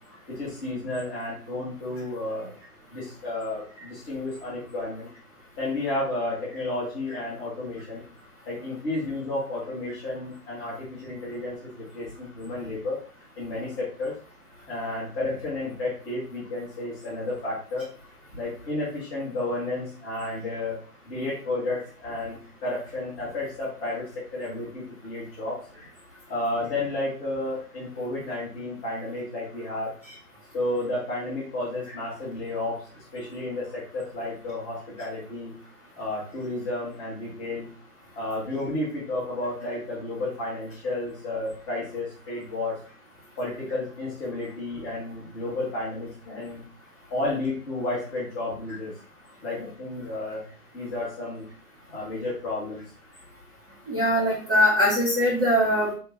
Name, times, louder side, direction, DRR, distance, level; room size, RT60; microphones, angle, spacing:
voice 1, 0.3-2.5 2.9-5.1 5.6-8.0 8.4-13.0 13.3-14.2 14.7-17.9 18.3-20.8 21.0-25.6 26.3-29.9 30.5-35.5 36.0-37.7 38.1-42.8 43.4-46.6 47.1-48.9 49.4-50.4 50.7-51.5 51.9-52.8, left 2 dB, 15° left, -6 dB, 1.6 m, -32 dB
voice 2, 53.9-55.9, equal, 5° right, -13 dB, 0.7 m, -21 dB
4.5 x 2.8 x 4.2 m, 0.40 s
figure-of-eight pair, 150°, 46 cm